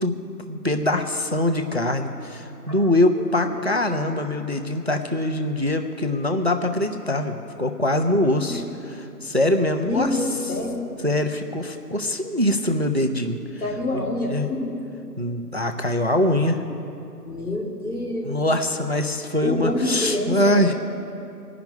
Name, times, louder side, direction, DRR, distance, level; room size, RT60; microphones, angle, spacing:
voice 1, 0.0-10.2 11.0-13.4 13.9-14.0 14.3-14.5 15.2-16.6 18.2-20.7, left 1 dB, 45° right, 6 dB, 0.5 m, -23 dB
voice 2, 3.1-3.7 8.5-8.6 9.8-10.8 13.6-14.7 17.2-18.4 19.4-20.7, left 1 dB, 65° left, -2 dB, 2.7 m, -27 dB
16.5 x 5.9 x 9.0 m, 2.7 s
figure-of-eight pair, 170°, 48 cm